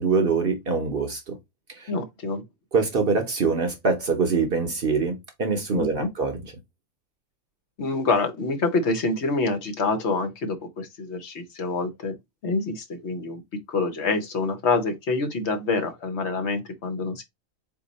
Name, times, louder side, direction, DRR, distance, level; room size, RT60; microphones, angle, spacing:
voice 1, 0.0-1.4 1.7-1.9 2.7-6.4, right 4 dB, 50° right, 0.9 m, -24 dB
voice 2, 1.9-2.4 5.7-6.1 7.8-12.1 12.4-13.4 13.7-17.2, left 3 dB, 60° left, 1.0 m, -26 dB
4.2 x 2.7 x 3.9 m
omnidirectional pair, 1.4 m